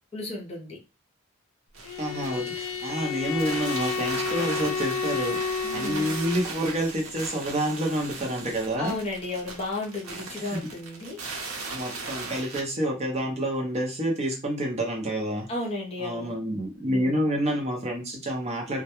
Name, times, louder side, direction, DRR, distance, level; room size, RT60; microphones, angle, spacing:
voice 1, 0.1-0.8 5.6-6.1 8.8-11.2 15.5-16.4 16.8-17.3, left 2 dB, 30° left, -1 dB, 0.5 m, -34 dB
sound 1, 1.7-12.6, right 3 dB, 85° right, 0.7 m, -38 dB
Bowed string instrument, 1.8-6.6, left 6 dB, 80° left, 0.4 m, -31 dB
voice 2, 2.0-9.0 10.4-10.6 11.7-15.5 16.0-18.8, right 1 dB, 30° right, 1 dB, 0.6 m, -28 dB
2.2 x 2.1 x 2.9 m, 0.28 s
head